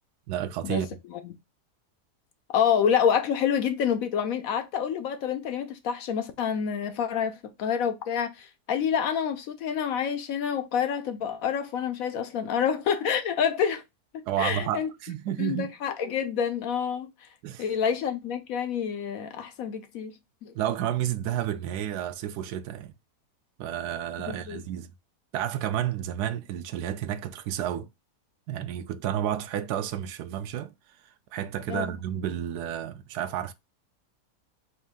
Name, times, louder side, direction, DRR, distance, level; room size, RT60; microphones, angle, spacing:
voice 1, 0.3-0.9 14.3-15.7 17.4-17.6 20.5-22.9 23.6-24.9 25.3-27.9 28.5-30.7 31.3-33.5, right 11 dB, 85° right, 1.1 m, -31 dB
voice 2, 2.5-13.8 14.1-14.9 15.4-17.1 17.6-20.5 24.3-24.6 31.7-31.9, left 8 dB, 70° left, 1.0 m, -28 dB
4.2 x 2.6 x 3.5 m
omnidirectional pair, 1.7 m